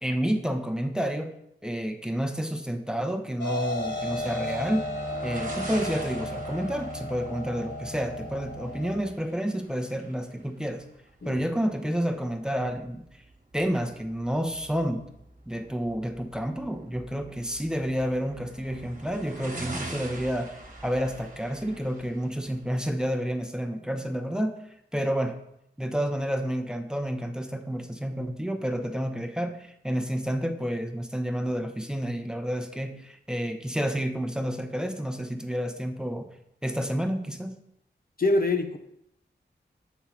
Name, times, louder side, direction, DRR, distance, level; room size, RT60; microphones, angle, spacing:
voice 1, 0.0-1.3 1.6-4.9 5.2-10.8 11.2-13.2 13.5-15.1 15.5-24.6 24.9-25.4 25.8-36.3 36.6-37.5, equal, 5° right, 6 dB, 0.7 m, -30 dB
sound 1, 3.4-9.0, left 1 dB, 75° left, 2.2 m, -34 dB
sound 2, 3.7-23.5, right 2 dB, 45° right, 1.4 m, -45 dB
voice 2, 38.2-38.8, left 2 dB, 50° left, 6 dB, 0.7 m, -24 dB
7.0 x 3.7 x 5.9 m, 0.78 s
cardioid pair, 50°, 19 cm